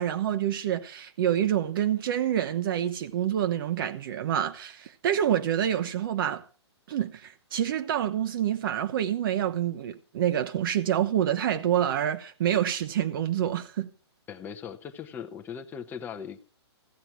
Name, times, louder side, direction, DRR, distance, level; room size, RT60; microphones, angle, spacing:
voice 1, 0.0-6.4 6.9-13.9, right 10 dB, 50° right, 0.7 m, -27 dB
voice 2, 14.3-16.4, left 7 dB, 15° left, 0.6 m, -39 dB
14.5 x 7.9 x 5.9 m
hypercardioid pair, 135°, 15 cm